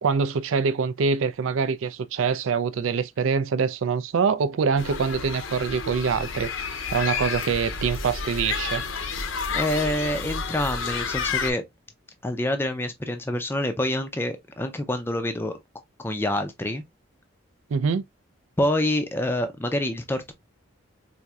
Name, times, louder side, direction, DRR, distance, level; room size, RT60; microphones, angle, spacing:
voice 1, 0.0-8.8 17.7-18.0, right 5 dB, 70° right, 0.4 m, -25 dB
sound 1, 4.8-11.5, left 5 dB, 70° left, 0.7 m, -30 dB
voice 2, 9.5-11.6 12.2-15.6 16.0-16.8 18.6-20.3, left 1 dB, 10° left, 0.4 m, -26 dB
4.2 x 2.6 x 2.3 m
head